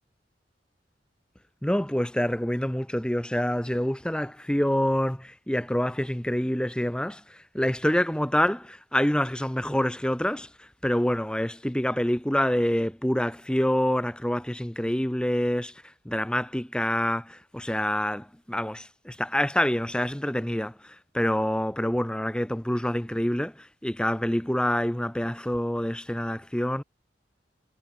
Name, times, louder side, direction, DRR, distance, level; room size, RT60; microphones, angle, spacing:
voice 1, 1.6-26.8, equal, 5° left, 1.0 m, -27 dB
head